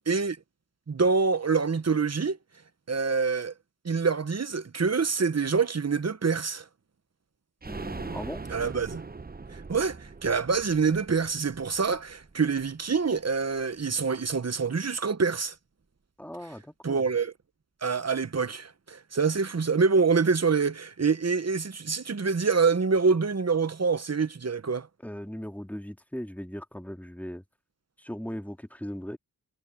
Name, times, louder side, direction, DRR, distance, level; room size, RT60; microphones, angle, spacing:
voice 1, 0.1-0.4 0.9-2.4 2.9-3.5 3.8-6.6 8.5-9.0 9.5-15.5 16.8-17.3 17.8-24.9, right 5 dB, 40° right, 1.2 m, -26 dB
voice 2, 7.6-8.4 16.2-17.0 25.0-27.4 28.0-29.2, equal, 5° left, 2.6 m, -38 dB
sound 1, 7.6-13.2 13.6-13.7 14.0-14.1, right 4 dB, 25° right, 0.8 m, -42 dB
cardioid pair, 55°, 40 cm